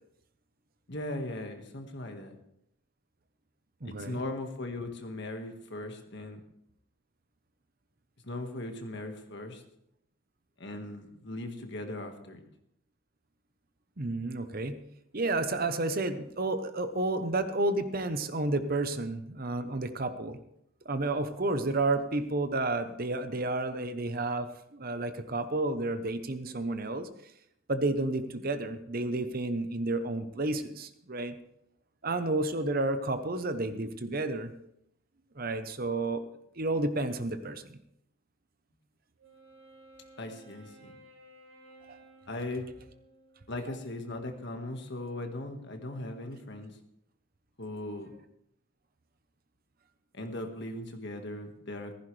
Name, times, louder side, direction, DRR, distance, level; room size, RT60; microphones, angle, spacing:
voice 1, 0.9-2.3 3.8-6.4 8.2-9.6 10.6-12.4 40.2-40.9 42.3-42.7 43.5-46.8 47.6-48.1 50.1-51.9, left 1 dB, 50° left, 5 dB, 1.7 m, -38 dB
voice 2, 3.8-4.2 14.0-14.8 15.1-20.4 20.8-27.1 27.7-31.3 32.0-34.5 35.3-36.2 36.6-37.8 41.9-42.0, right 2 dB, 40° right, 10 dB, 0.9 m, -31 dB
Wind instrument woodwind instrument, 39.2-43.7, right 1 dB, 75° right, 4.0 m, -56 dB
15.5 x 15.0 x 3.3 m, 0.76 s
head